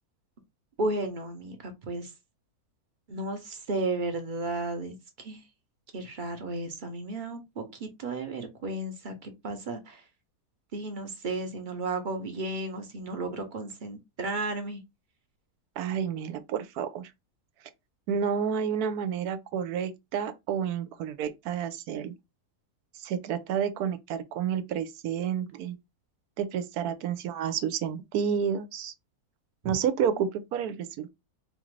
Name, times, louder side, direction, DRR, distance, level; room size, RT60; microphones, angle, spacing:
voice 1, 0.8-2.1 3.1-5.4 5.9-10.0 10.7-14.8 29.6-29.8, right 2 dB, 45° right, 0.7 m, -34 dB
voice 2, 15.8-17.1 18.1-22.1 22.9-25.8 26.4-28.9 29.6-31.1, right 8 dB, 80° right, 1.1 m, -30 dB
4.1 x 2.5 x 3.1 m
omnidirectional pair, 1.6 m